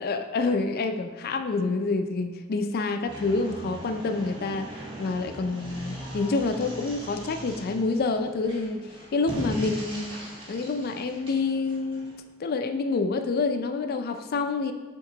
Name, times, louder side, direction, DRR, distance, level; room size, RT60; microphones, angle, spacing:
voice 1, 0.0-4.7 5.0-8.8 9.1-10.1 10.5-14.7, left 3 dB, 45° left, 7 dB, 0.4 m, -27 dB
sound 1, 3.1-12.2, equal, 25° right, 1.3 m, -39 dB
7.2 x 3.6 x 3.9 m, 1.3 s
head